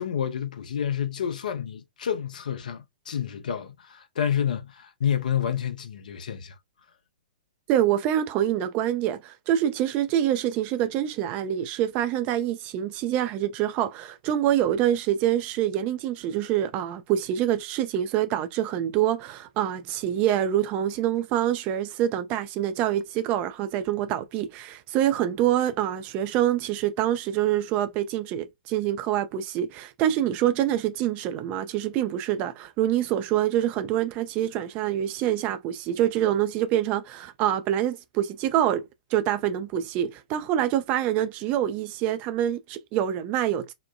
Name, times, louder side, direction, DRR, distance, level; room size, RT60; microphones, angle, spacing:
voice 1, 0.0-6.6, left 8 dB, 60° left, 0.6 m, -29 dB
voice 2, 7.7-38.8 39.1-43.7, right 11 dB, 30° right, 0.4 m, -26 dB
3.1 x 2.1 x 2.3 m
figure-of-eight pair, 110°, 5 cm